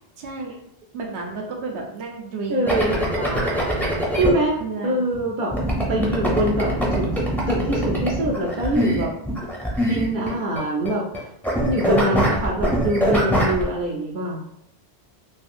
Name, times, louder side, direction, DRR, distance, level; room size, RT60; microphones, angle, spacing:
voice 1, 0.2-0.5 0.9-4.3 4.6-5.2 5.6-6.2, right 3 dB, 85° right, 1 dB, 1.0 m, -33 dB
voice 2, 2.5-3.0 4.2-5.5 5.9-7.2 7.5-9.1 9.9-11.0 11.6-14.4, right 1 dB, 60° right, -3 dB, 0.6 m, -24 dB
sound 1, 2.7-4.3 5.5-10.6 10.9-11.2 11.4-13.6, equal, ahead, 0.5 m, -23 dB
3.6 x 2.4 x 2.5 m, 0.78 s
omnidirectional pair, 1.1 m